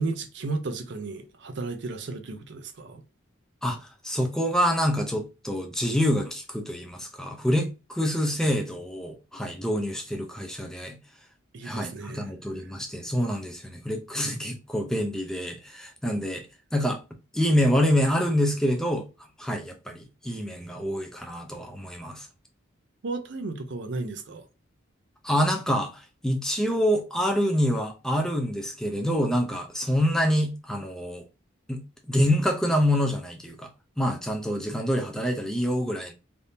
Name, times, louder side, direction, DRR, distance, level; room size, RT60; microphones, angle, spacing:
voice 1, 0.0-3.0 11.5-12.3 12.6-12.7 23.0-24.4, right 3 dB, 60° right, 0.5 m, -34 dB
voice 2, 3.6-11.0 11.6-16.5 16.7-17.0 17.3-19.1 19.4-22.3 25.2-31.2 31.7-31.8 32.1-33.7 34.0-36.1, equal, 5° left, 0.5 m, -26 dB
3.4 x 2.6 x 2.6 m
head